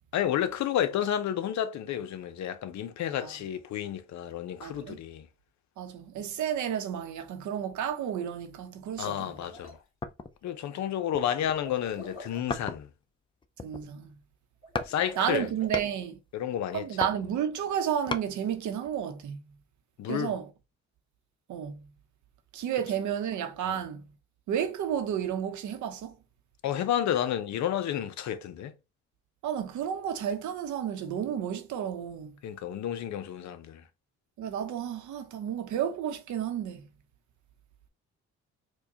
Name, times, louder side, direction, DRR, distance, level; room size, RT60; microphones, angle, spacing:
voice 1, 0.1-5.3 9.0-9.8 10.4-12.9 14.8-15.5 16.3-16.9 20.0-20.3 23.7-23.8 26.6-28.7 32.4-33.8, left 10 dB, 65° left, 0.6 m, -31 dB
voice 2, 4.6-5.0 5.8-9.4 13.6-14.1 15.2-16.2 16.7-19.4 20.1-20.5 21.5-21.8 22.5-24.1 24.5-26.2 29.4-32.4 34.4-36.9, right 9 dB, 75° right, 0.8 m, -32 dB
sound 1, 8.9-9.8 11.6-12.5 14.6-15.7, left 2 dB, 45° left, 2.1 m, -46 dB
sound 2, 10.0-10.5 11.1-11.7 12.5-13.0 13.4-14.1 14.8-15.0 15.3-16.0 16.7-18.3 18.8-18.9, left 4 dB, 15° left, 0.4 m, -36 dB
4.6 x 2.2 x 2.8 m
cardioid pair, 90°, 30 cm